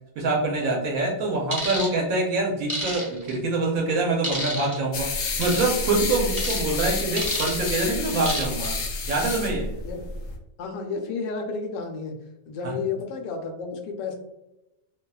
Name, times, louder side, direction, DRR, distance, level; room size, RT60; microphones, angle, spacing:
voice 1, 0.2-8.8 9.1-9.7 12.6-12.7, right 2 dB, 65° right, -1 dB, 0.9 m, -25 dB
sound 1, 1.5-1.9 2.7-3.3 4.2-4.8 5.4-5.7 6.4-6.6 7.2-7.7 8.2-8.6 9.1-9.3, equal, 10° left, 1.0 m, -30 dB
sound 2, 4.9-10.3, left 3 dB, 70° left, 0.8 m, -29 dB
voice 2, 10.6-12.1 12.5-14.1, left 4 dB, 90° left, 3 dB, 1.3 m, -31 dB
3.3 x 2.3 x 2.2 m, 0.93 s
omnidirectional pair, 1.8 m